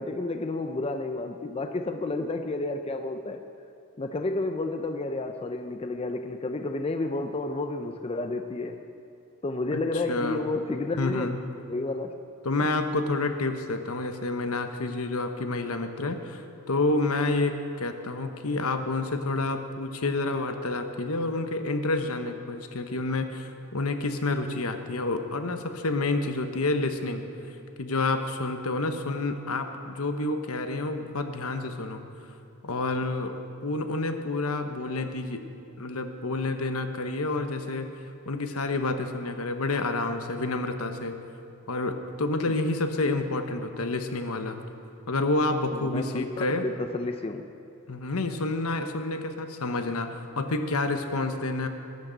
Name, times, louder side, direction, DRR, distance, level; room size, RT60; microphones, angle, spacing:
voice 1, 0.0-3.4 4.0-8.8 9.4-11.3 11.7-12.2 12.6-12.7 45.7-47.4, left 2 dB, 25° left, 7 dB, 0.5 m, -31 dB
voice 2, 10.1-10.4 11.0-11.4 12.4-27.2 27.8-32.0 32.6-33.3 33.6-35.4 35.8-37.9 38.3-41.1 41.7-44.6 45.1-46.6 47.9-51.7, left 2 dB, 75° left, 7 dB, 1.1 m, -29 dB
20.5 x 12.0 x 4.0 m, 2.8 s
head